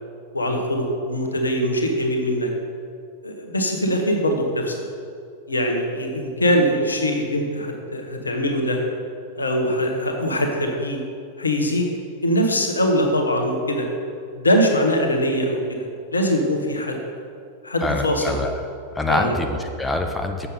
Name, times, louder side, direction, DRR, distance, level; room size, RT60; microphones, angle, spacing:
voice 1, 0.3-2.5 3.2-4.8 5.5-8.8 9.4-11.0 11.4-11.9 12.2-13.9 14.3-17.0 17.6-18.2 19.1-19.3, equal, 75° left, 3 dB, 1.0 m, -22 dB
voice 2, 17.8-18.6 18.9-20.5, left 2 dB, 10° left, 4 dB, 0.6 m, -25 dB
7.1 x 6.9 x 5.2 m, 2.4 s
figure-of-eight pair, 90°, 0 cm